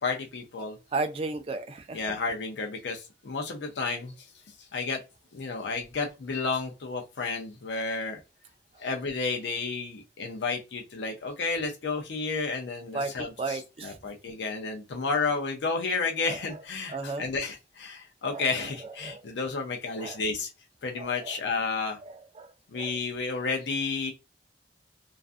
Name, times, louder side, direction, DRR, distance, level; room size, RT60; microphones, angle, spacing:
voice 1, 0.0-0.8 1.9-4.3 4.6-5.0 5.3-8.2 8.8-20.5 20.8-22.0 22.7-24.1, left 4 dB, 70° left, 0.5 m, -31 dB
voice 2, 0.9-2.0 12.9-13.1 13.4-14.0 16.3-16.4 16.9-17.3 18.3-18.4 19.0-19.2 20.0-20.2 21.0-21.4 22.1-22.9, right 3 dB, 30° right, 0.3 m, -34 dB
2.4 x 2.4 x 2.3 m
head